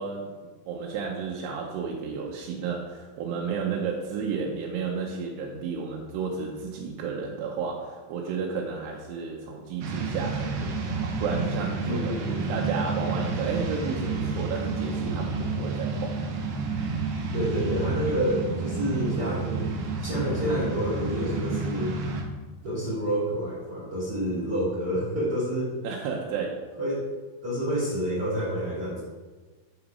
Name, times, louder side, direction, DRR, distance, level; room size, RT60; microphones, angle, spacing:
voice 1, 0.0-12.2 12.5-16.2 25.8-26.6, right 5 dB, 90° right, -1 dB, 2.9 m, -32 dB
sound 1, 9.8-22.2, right 3 dB, 75° right, 2.6 m, -30 dB
voice 2, 11.8-12.5 17.3-22.0 22.6-25.7 26.8-27.1 27.4-29.0, equal, 30° right, -9 dB, 2.3 m, -28 dB
11.0 x 4.0 x 4.8 m, 1.3 s
omnidirectional pair, 4.7 m